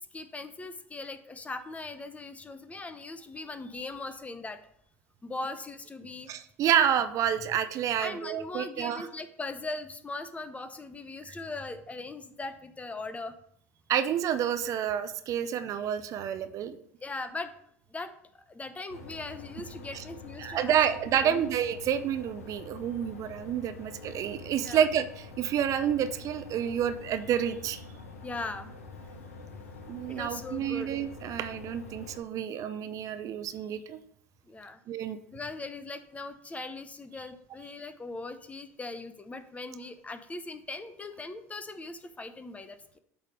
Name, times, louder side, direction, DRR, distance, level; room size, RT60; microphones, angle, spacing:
voice 1, 0.1-4.6 5.2-6.3 8.0-13.3 17.0-17.5 17.9-20.8 21.2-21.5 24.6-24.9 28.2-28.7 29.5-29.6 30.1-30.9 34.5-34.8 35.3-43.0, left 3 dB, 20° left, 11 dB, 0.7 m, -40 dB
voice 2, 6.3-9.1 13.9-16.8 19.9-20.0 20.4-27.8 29.9-34.0 34.9-35.2, right 9 dB, 45° right, 11 dB, 0.5 m, -29 dB
sound 1, 18.9-32.2, left 3 dB, 80° left, 0.8 m, -46 dB
8.1 x 3.4 x 5.2 m, 0.67 s
figure-of-eight pair, 70°, 8 cm